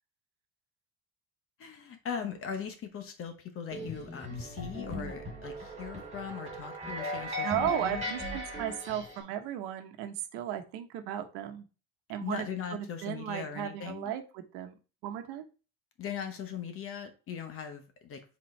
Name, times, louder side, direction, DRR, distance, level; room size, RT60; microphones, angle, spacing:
voice 1, 1.6-8.2 12.2-14.1 16.0-18.2, left 7 dB, 30° left, 7 dB, 0.9 m, -40 dB
sound 1, 3.7-9.2, left 1 dB, 15° right, 2.6 m, -38 dB
voice 2, 7.4-11.6 12.1-12.5 12.7-14.7 15.0-15.4, right 11 dB, 70° right, 7 dB, 1.1 m, -35 dB
7.2 x 4.1 x 3.2 m, 0.33 s
cardioid pair, 175°, 42 cm